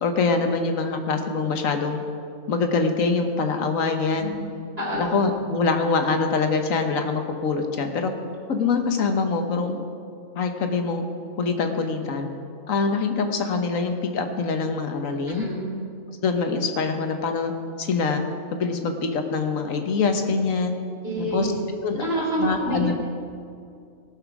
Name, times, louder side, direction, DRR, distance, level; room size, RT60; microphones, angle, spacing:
voice 1, 0.0-2.0 2.5-4.3 4.9-8.1 8.5-9.8 10.3-11.0 11.4-12.3 12.7-15.4 16.2-17.5 17.8-18.2 18.5-20.7 21.3-21.5 21.8-22.9, left 4 dB, 85° left, 5 dB, 1.5 m, -24 dB
voice 2, 15.3-15.7 21.0-21.5 22.0-22.9, right 1 dB, 50° right, -6 dB, 3.9 m, -27 dB
18.5 x 6.5 x 6.0 m, 2.4 s
omnidirectional pair, 1.4 m